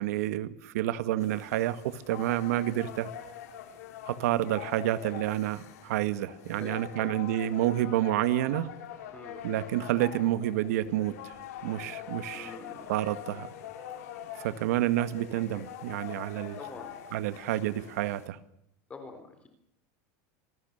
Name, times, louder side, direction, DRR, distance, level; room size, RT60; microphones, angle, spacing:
voice 1, 0.0-3.1 4.1-8.7 9.4-11.3 11.6-12.5 12.9-13.5 14.4-16.6 17.1-18.4, right 13 dB, 80° right, 13 dB, 2.1 m, -29 dB
sound 1, 1.2-18.3, left 9 dB, 85° left, 5.5 m, -44 dB
voice 2, 6.5-7.1 9.1-9.4 12.3-12.9 16.6-16.9 18.9-19.5, left 3 dB, 15° left, 7 dB, 3.8 m, -45 dB
27.5 x 20.0 x 6.8 m, 0.77 s
supercardioid pair, 165°, 8 cm